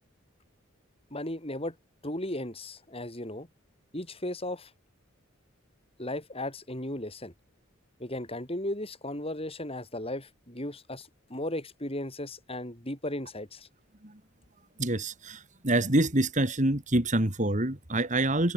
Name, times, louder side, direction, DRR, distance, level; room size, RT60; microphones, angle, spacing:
voice 1, 1.1-1.8 2.0-3.5 3.9-4.7 6.0-7.3 8.0-13.7, left 1 dB, 25° left, 6.9 m, -36 dB
voice 2, 14.8-18.5, right 1 dB, 35° right, 2.8 m, -26 dB
head